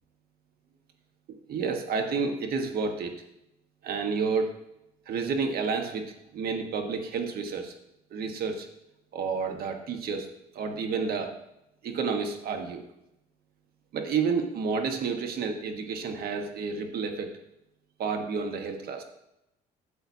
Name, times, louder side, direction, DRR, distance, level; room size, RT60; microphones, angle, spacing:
voice 1, 1.3-3.1 3.8-4.5 5.1-7.7 8.1-8.7 9.1-10.3 10.5-11.3 11.8-12.8 13.9-17.3 18.0-19.0, right 5 dB, 65° right, 5 dB, 1.4 m, -30 dB
13.0 x 7.8 x 2.8 m, 0.85 s
cardioid pair, 110°, 17 cm